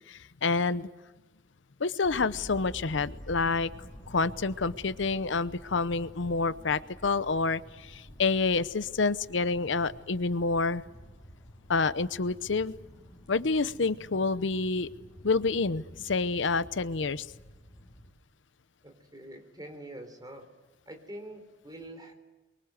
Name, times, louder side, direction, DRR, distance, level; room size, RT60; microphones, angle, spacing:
voice 1, 0.1-0.9 1.8-3.7 4.1-10.8 11.7-12.7 13.3-14.9 15.2-17.3, left 4 dB, 75° left, 15 dB, 0.8 m, -28 dB
sound 1, 2.0-18.1, equal, 20° left, 7.5 m, -49 dB
voice 2, 18.8-20.5 20.9-22.1, right 1 dB, 20° right, 5 dB, 3.8 m, -45 dB
28.5 x 23.5 x 7.9 m, 1.1 s
head